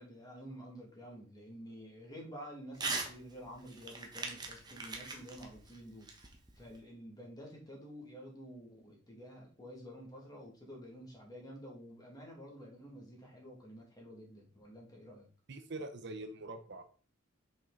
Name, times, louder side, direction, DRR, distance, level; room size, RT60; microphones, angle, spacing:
voice 1, 0.0-6.1 6.6-15.3, equal, 20° left, -1 dB, 2.2 m, -50 dB
Crumpling crinkling / Tearing, 2.7-3.1 3.5-6.8, right 3 dB, 20° right, 1.1 m, -40 dB
voice 2, 15.5-16.8, right 2 dB, 55° right, 8 dB, 0.8 m, -44 dB
6.3 x 5.3 x 4.0 m, 0.39 s
head